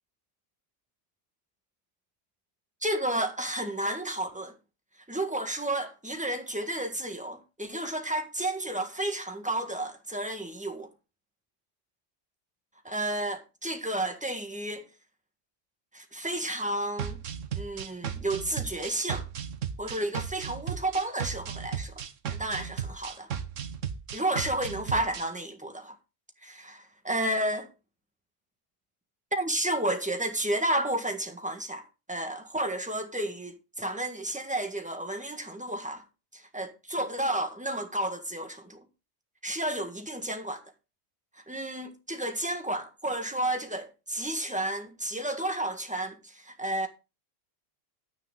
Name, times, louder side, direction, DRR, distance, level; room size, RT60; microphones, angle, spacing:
voice 1, 2.8-4.5 5.1-10.9 12.8-14.9 15.9-17.2 17.5-19.3 19.8-22.0 22.3-23.3 24.1-25.9 26.4-27.7 29.3-36.0 36.3-38.8 39.4-40.6 41.5-46.9, right 1 dB, 5° right, 1.5 m, -32 dB
sound 1, 17.0-25.3, right 8 dB, 80° right, 1.3 m, -35 dB
10.5 x 8.9 x 3.7 m
omnidirectional pair, 1.3 m